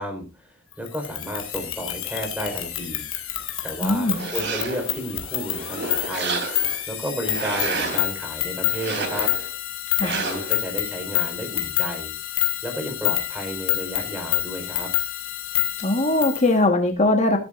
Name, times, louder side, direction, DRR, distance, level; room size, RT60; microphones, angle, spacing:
voice 1, 0.0-3.1 3.6-6.4 6.9-9.3 10.0-12.1 12.6-14.9, equal, 5° right, 4 dB, 4.3 m, -32 dB
sound 1, 0.9-16.5, left 13 dB, 80° left, 4.2 m, -28 dB
voice 2, 3.8-4.3 10.0-10.2 15.8-17.4, left 2 dB, 35° left, 4 dB, 1.4 m, -20 dB
sound 2, 4.1-5.0 5.5-6.8 7.2-8.1 8.7-9.5 10.0-10.6, right 4 dB, 60° right, 3.3 m, -30 dB
14.5 x 13.5 x 2.5 m, 0.29 s
head